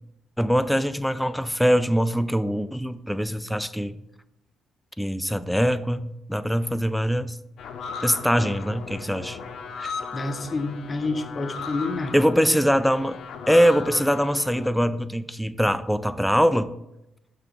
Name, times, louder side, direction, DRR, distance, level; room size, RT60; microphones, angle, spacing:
voice 1, 0.4-4.0 5.0-7.4 8.0-9.4 9.8-9.9 12.1-13.2 13.5-16.7, equal, ahead, 13 dB, 0.3 m, -23 dB
sound 1, 7.6-14.7, left 5 dB, 70° left, 0.7 m, -37 dB
voice 2, 10.1-12.1, left 3 dB, 30° left, 8 dB, 0.7 m, -29 dB
6.6 x 2.9 x 5.3 m, 0.88 s
cardioid pair, 90°, 0 cm